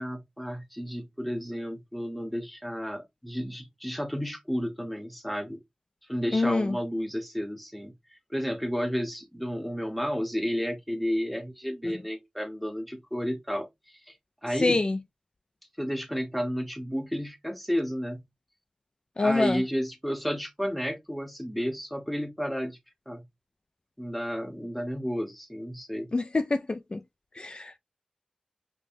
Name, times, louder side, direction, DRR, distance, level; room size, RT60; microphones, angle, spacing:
voice 1, 0.0-5.6 6.1-7.9 8.3-14.1 14.4-14.8 15.8-18.2 19.2-22.8 23.1-23.2 24.0-26.1, equal, ahead, 0.9 m, -32 dB
voice 2, 6.3-6.8 14.6-15.0 19.2-19.6 26.1-27.0 27.4-27.8, left 3 dB, 45° left, 0.3 m, -26 dB
5.3 x 2.2 x 2.6 m
wide cardioid pair, 55°, 2 cm